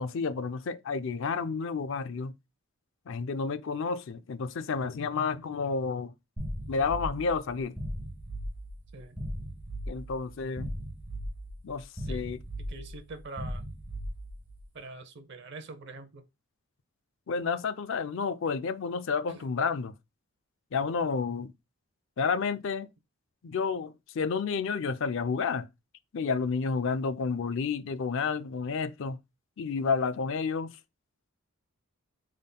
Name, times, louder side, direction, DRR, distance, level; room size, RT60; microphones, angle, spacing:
voice 1, 0.0-2.3 3.1-6.1 6.7-7.8 9.9-10.7 11.6-12.4 17.3-19.9 20.7-21.5 22.2-22.9 23.4-25.7 26.1-29.2 29.6-30.7, left 5 dB, 65° left, 0.4 m, -30 dB
sound 1, 6.4-14.6, equal, 5° right, 1.2 m, -38 dB
voice 2, 12.7-13.6 14.7-16.2 19.3-19.4, right 3 dB, 55° right, 0.7 m, -44 dB
5.1 x 3.7 x 2.2 m
head